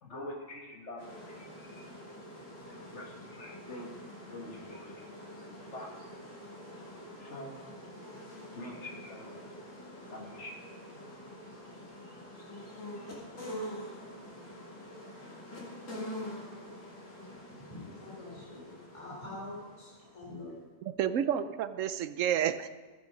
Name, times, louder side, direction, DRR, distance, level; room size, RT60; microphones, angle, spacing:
voice 1, 0.0-1.9 2.7-5.1 5.4-6.0 7.2-7.6 8.5-9.4 10.1-10.7, left 1 dB, 65° left, 1 dB, 2.1 m, -46 dB
sound 1, 1.0-20.5, equal, 85° left, 3.1 m, -46 dB
voice 2, 17.6-20.5, left 2 dB, 25° left, -5 dB, 3.2 m, -45 dB
voice 3, 20.8-22.7, right 9 dB, 85° right, 12 dB, 1.0 m, -30 dB
14.5 x 9.3 x 5.1 m, 1.4 s
omnidirectional pair, 1.3 m